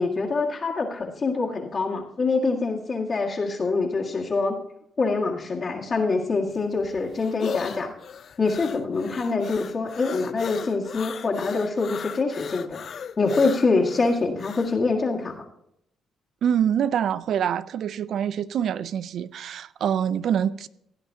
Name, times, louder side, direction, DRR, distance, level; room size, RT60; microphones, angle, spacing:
voice 1, 0.0-4.6 5.0-7.9 8.4-12.8 13.2-15.4, left 3 dB, 40° left, 2.0 m, -25 dB
sound 1, 6.5-14.8, left 7 dB, 55° left, 0.5 m, -36 dB
voice 2, 16.4-20.7, right 9 dB, 65° right, 0.5 m, -25 dB
16.5 x 9.9 x 2.8 m
cardioid pair, 90°, 0 cm